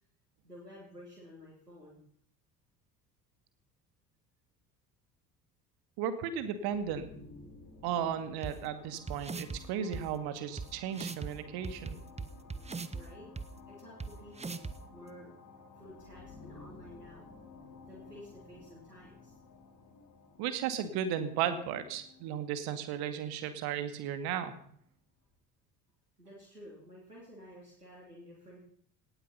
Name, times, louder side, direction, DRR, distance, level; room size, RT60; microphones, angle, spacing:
voice 1, 0.4-2.0 12.9-13.3 13.7-15.3 15.7-17.2 17.9-19.4 26.2-28.6, equal, 90° right, -4 dB, 3.1 m, -52 dB
voice 2, 6.0-7.1 7.8-12.0 20.4-24.6, right 8 dB, 55° right, 10 dB, 2.4 m, -35 dB
sound 1, 6.6-24.3, left 4 dB, 45° left, 4.3 m, -55 dB
sound 2, 8.4-8.5 9.1-9.6 9.9-10.0 10.6-10.7 10.9-11.3 11.6-13.0 13.4-13.5 14.0-14.1 14.4-14.7, right 4 dB, 15° right, 1.2 m, -38 dB
18.0 x 12.5 x 5.7 m, 0.62 s
figure-of-eight pair, 60°, 46 cm